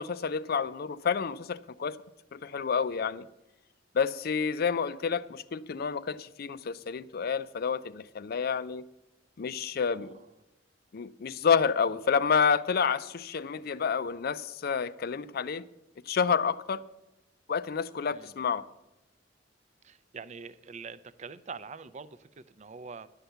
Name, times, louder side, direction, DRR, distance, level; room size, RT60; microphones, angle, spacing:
voice 1, 0.0-2.0 2.3-3.3 3.9-8.8 9.4-10.2 10.9-15.6 16.1-16.9 17.5-18.6, left 6 dB, 55° left, 0.4 m, -29 dB
voice 2, 18.1-18.4 19.8-23.1, right 5 dB, 40° right, 0.5 m, -44 dB
11.5 x 5.7 x 7.9 m
head